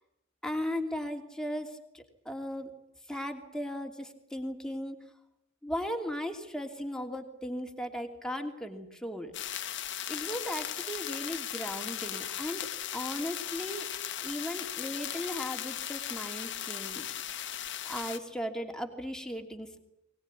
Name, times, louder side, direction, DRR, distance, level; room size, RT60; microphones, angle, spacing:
voice 1, 0.4-2.7 3.1-5.0 5.6-9.3 10.1-12.6 12.9-13.9 14.2-17.5 17.8-19.8, equal, 5° left, 4 dB, 2.9 m, -37 dB
sound 1, 9.3-18.2, left 10 dB, 60° left, 1.8 m, -37 dB
22.5 x 20.0 x 9.8 m, 0.79 s
head